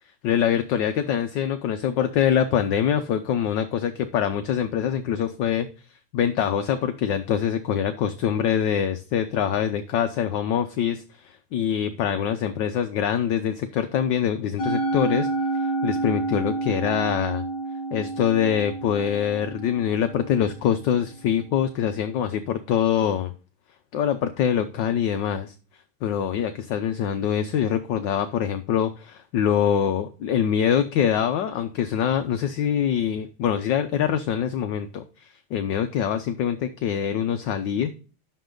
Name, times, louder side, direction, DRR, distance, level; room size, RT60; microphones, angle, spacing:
voice 1, 0.2-15.3 15.5-17.4 17.9-23.3 23.9-25.5 26.0-37.9, left 9 dB, 65° left, 7 dB, 1.3 m, -24 dB
Musical instrument, 14.6-21.0, right 3 dB, 50° left, 3.0 m, -29 dB
11.5 x 6.7 x 3.8 m, 0.35 s
omnidirectional pair, 2.4 m